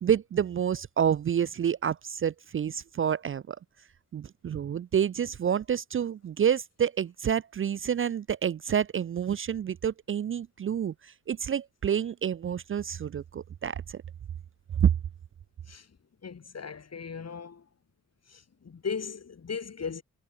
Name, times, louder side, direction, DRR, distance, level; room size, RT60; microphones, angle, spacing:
voice 1, 0.0-3.6 4.1-14.0 14.8-14.9, right 8 dB, 40° right, 0.4 m, -28 dB
voice 2, 16.2-17.6 18.3-20.0, left 6 dB, 55° left, 4.5 m, -37 dB
cardioid pair, 65°, 31 cm